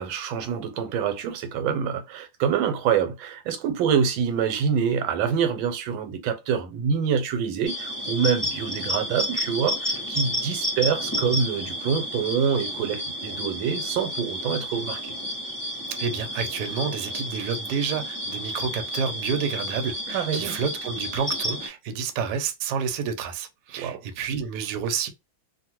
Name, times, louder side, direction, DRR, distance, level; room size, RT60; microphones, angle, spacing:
voice 1, 0.0-15.1 20.1-20.5 23.8-24.0, right 7 dB, 85° right, 1.4 m, -26 dB
sound 1, 7.6-21.7, equal, 15° left, 0.7 m, -31 dB
voice 2, 16.0-25.1, right 6 dB, 70° right, 1.1 m, -29 dB
2.8 x 2.5 x 2.8 m
omnidirectional pair, 2.1 m